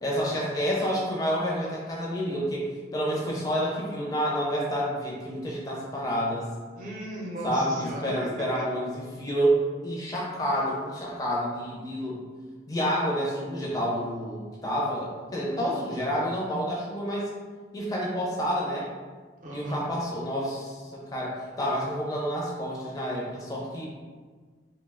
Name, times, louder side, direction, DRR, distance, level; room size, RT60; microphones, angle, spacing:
voice 1, 0.0-2.7 2.9-6.5 7.4-12.2 12.7-17.3 17.7-18.9 19.5-23.9, equal, 20° left, -4 dB, 0.5 m, -29 dB
voice 2, 6.8-8.6 19.4-19.9, equal, 45° right, -3 dB, 0.6 m, -36 dB
2.7 x 2.1 x 3.5 m, 1.5 s
head